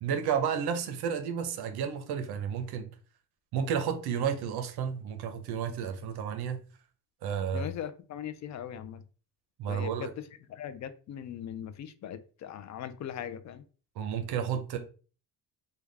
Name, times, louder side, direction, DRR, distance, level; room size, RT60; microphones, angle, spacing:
voice 1, 0.0-2.8 3.5-6.6 7.2-7.7 9.6-10.1 14.0-14.8, right 7 dB, 70° right, 0.7 m, -31 dB
voice 2, 7.5-9.0 9.7-13.6, left 9 dB, 45° left, 0.4 m, -40 dB
3.5 x 2.2 x 3.2 m
cardioid pair, 105°, 40 cm